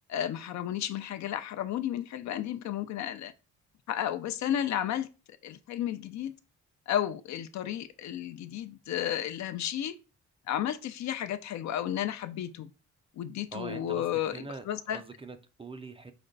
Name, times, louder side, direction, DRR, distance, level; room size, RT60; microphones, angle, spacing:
voice 1, 0.1-3.3 3.9-5.1 5.4-6.3 6.9-9.9 10.5-12.7 13.2-15.0, left 11 dB, 65° left, 0.5 m, -33 dB
voice 2, 13.5-16.1, right 3 dB, 20° right, 0.4 m, -43 dB
5.0 x 2.2 x 3.8 m
cardioid pair, 90°, 30 cm